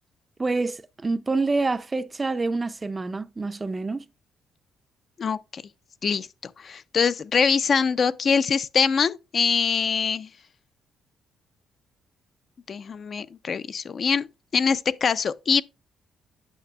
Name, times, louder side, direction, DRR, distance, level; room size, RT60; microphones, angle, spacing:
voice 1, 0.4-4.1, right 3 dB, 25° right, 0.4 m, -27 dB
voice 2, 5.2-5.6 6.0-6.3 6.6-10.3 12.7-14.3 14.5-15.6, left 6 dB, 50° left, 0.4 m, -23 dB
9.2 x 5.8 x 2.3 m
cardioid pair, 90°, 0 cm